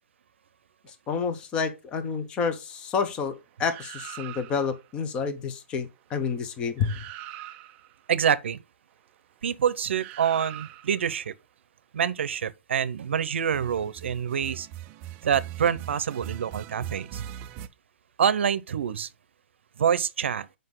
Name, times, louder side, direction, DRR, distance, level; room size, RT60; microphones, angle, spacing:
voice 1, 1.1-7.0, left 5 dB, 15° left, 0.8 m, -29 dB
sound 1, 3.6-4.8 6.4-6.5 6.8-7.9 9.9-11.1 13.4-17.7, right 12 dB, 20° right, 0.4 m, -41 dB
voice 2, 8.1-8.6 9.4-11.3 11.9-14.7 15.2-17.3 18.2-19.1 19.8-20.5, right 8 dB, 70° right, 0.7 m, -26 dB
7.8 x 5.3 x 3.8 m
hypercardioid pair, 170°, 7 cm